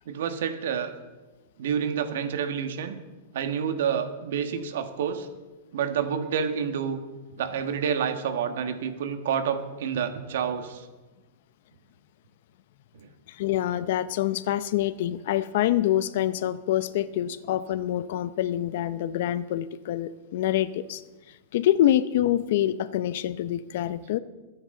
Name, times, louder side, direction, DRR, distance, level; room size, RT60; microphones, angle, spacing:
voice 1, 0.0-0.9 1.6-3.0 3.3-5.3 5.7-7.0 7.3-10.9 12.9-13.1, right 7 dB, 70° right, 7 dB, 1.6 m, -28 dB
voice 2, 13.3-21.0 21.5-24.2, left 12 dB, 55° left, 15 dB, 0.6 m, -26 dB
22.0 x 9.8 x 3.9 m, 1.2 s
supercardioid pair, 155°, 0 cm